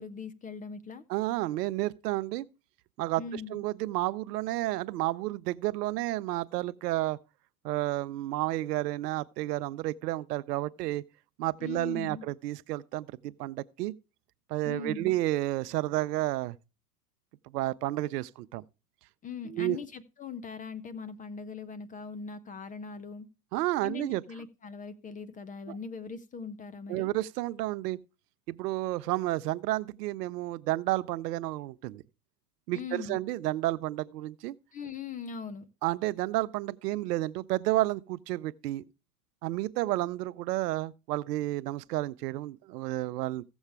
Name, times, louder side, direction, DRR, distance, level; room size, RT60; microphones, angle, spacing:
voice 1, 0.0-1.0 3.2-3.6 11.6-12.2 14.6-15.1 19.2-23.3 23.8-27.1 32.7-33.2 34.7-35.7, left 5 dB, 15° left, 0.5 m, -40 dB
voice 2, 1.1-2.5 3.0-7.2 7.6-11.0 11.4-13.9 14.5-16.6 17.5-18.6 19.5-19.8 23.5-24.2 25.7-25.8 26.9-28.0 28.5-32.0 32.7-34.5 35.8-38.8 39.4-43.4, right 16 dB, 75° right, 0.7 m, -31 dB
15.5 x 7.2 x 3.4 m
hypercardioid pair, 115°, 48 cm